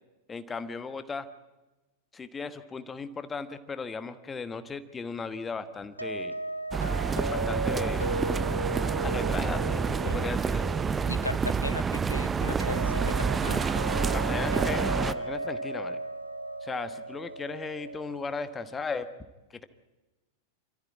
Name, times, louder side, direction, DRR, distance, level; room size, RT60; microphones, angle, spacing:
voice 1, 0.3-1.3 2.1-6.3 7.3-8.2 9.0-10.8 14.1-16.0 16.6-19.1, left 4 dB, 15° left, 11 dB, 1.3 m, -36 dB
sound 1, 6.0-18.8, right 2 dB, 85° right, 1.1 m, -36 dB
sound 2, 6.7-15.1, right 5 dB, 20° right, 0.7 m, -28 dB
voice 2, 11.1-13.7, left 2 dB, 85° left, 18 dB, 0.7 m, -37 dB
27.5 x 14.0 x 8.7 m, 1.1 s
figure-of-eight pair, 90°, 0 cm